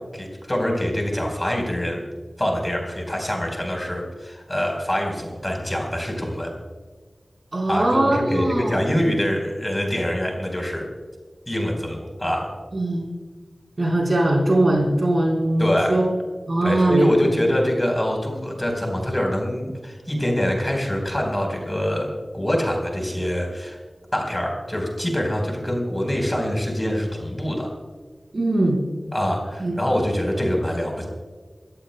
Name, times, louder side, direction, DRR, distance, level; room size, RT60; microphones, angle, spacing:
voice 1, 0.1-2.0 2.4-6.5 7.7-10.9 11.5-12.5 15.6-16.0 16.6-23.8 24.1-27.7 29.1-31.0, equal, 15° left, 1 dB, 4.4 m, -24 dB
voice 2, 7.5-8.8 12.7-13.1 13.8-16.1 16.5-17.4 28.3-28.8 29.6-29.8, right 1 dB, 55° right, -2 dB, 4.5 m, -21 dB
26.5 x 15.0 x 2.3 m, 1.4 s
wide cardioid pair, 65°, 0 cm